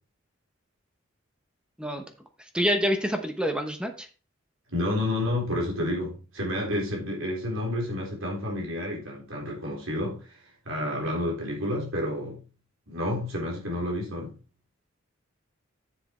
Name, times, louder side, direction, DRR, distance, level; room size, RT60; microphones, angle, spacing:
voice 1, 2.5-4.1, equal, 5° right, 0.9 m, -26 dB
voice 2, 4.7-12.4 12.9-14.3, left 1 dB, 70° right, 3.7 m, -30 dB
7.6 x 6.8 x 4.4 m
head